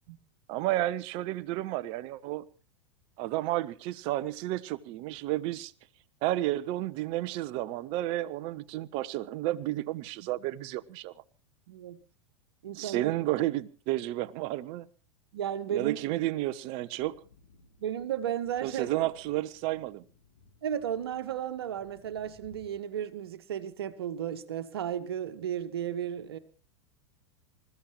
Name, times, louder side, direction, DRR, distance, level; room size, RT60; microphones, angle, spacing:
voice 1, 0.5-2.5 3.2-5.7 6.2-11.1 12.7-14.9 15.7-17.1 18.6-20.0, right 16 dB, 40° right, 0.9 m, -31 dB
voice 2, 11.7-12.0 12.6-13.1 15.3-16.0 17.8-19.1 20.6-26.4, right 9 dB, 60° right, 1.6 m, -34 dB
sound 1, 16.9-22.7, left 3 dB, 65° left, 6.5 m, -60 dB
27.0 x 15.0 x 3.1 m
figure-of-eight pair, 90°, 15 cm